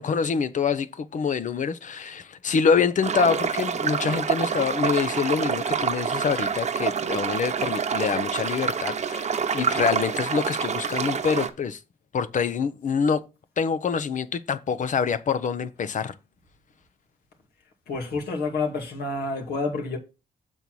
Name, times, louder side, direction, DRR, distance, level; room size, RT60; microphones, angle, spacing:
voice 1, 0.0-11.8 12.1-13.2 13.6-16.1, left 6 dB, 55° left, 0.8 m, -26 dB
sound 1, 3.0-11.5, right 6 dB, 45° right, 0.9 m, -27 dB
voice 2, 17.9-20.0, left 3 dB, 80° left, 2.3 m, -28 dB
6.9 x 4.4 x 6.1 m
cardioid pair, 95°, 16 cm